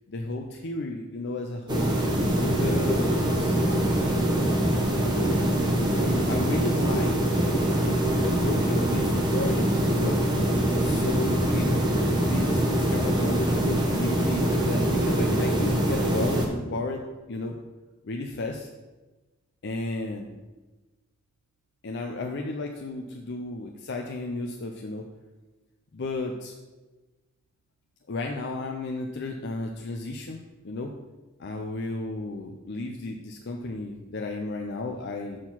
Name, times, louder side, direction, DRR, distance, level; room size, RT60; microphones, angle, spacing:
voice 1, 0.1-1.9 2.4-3.6 5.8-7.1 7.5-10.2 10.8-11.7 12.2-17.5 18.0-18.7 19.6-20.4 21.8-25.0 25.9-26.5 28.1-30.4 30.6-30.9 31.4-35.4, left 2 dB, 55° left, 2 dB, 0.5 m, -33 dB
sound 1, 1.7-16.5, right 1 dB, 20° right, 1.0 m, -24 dB
6.3 x 4.4 x 5.7 m, 1.2 s
head